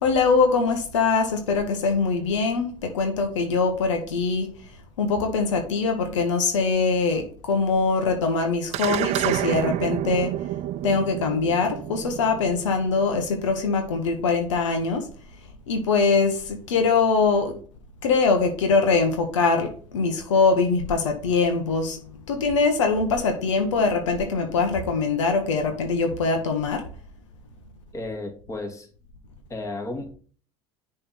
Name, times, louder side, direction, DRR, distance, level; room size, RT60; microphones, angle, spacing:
voice 1, 0.0-4.5 5.0-10.3 10.8-15.1 15.7-17.5 18.0-22.0 22.3-26.8, left 4 dB, 85° left, 5 dB, 1.2 m, -23 dB
sound 1, 8.7-13.4, right 14 dB, 45° right, 0.4 m, -29 dB
voice 2, 27.9-28.9 29.5-30.1, left 2 dB, 20° left, 2 dB, 2.0 m, -33 dB
6.7 x 3.5 x 5.7 m, 0.43 s
hypercardioid pair, 85°, 15 cm